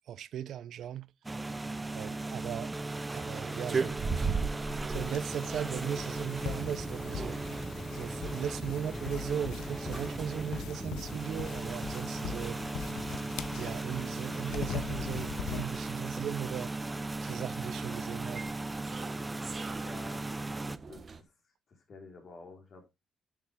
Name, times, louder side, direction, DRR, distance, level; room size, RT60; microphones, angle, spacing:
voice 1, 0.1-1.1 1.9-2.7 3.1-4.4 4.9-7.5 7.9-12.6 13.6-16.7 17.2-18.4, right 10 dB, 75° right, 0.6 m, -38 dB
sound 1, 1.2-20.8, right 2 dB, 15° right, 0.6 m, -37 dB
sound 2, 3.5-21.2, right 5 dB, 40° right, 1.2 m, -41 dB
sound 3, 4.9-15.7, left 10 dB, 85° left, 0.7 m, -42 dB
voice 2, 17.3-17.7 19.5-20.2 20.7-21.3 21.7-22.9, left 3 dB, 50° left, 4.5 m, -51 dB
10.5 x 7.2 x 3.6 m
cardioid pair, 90°, 0 cm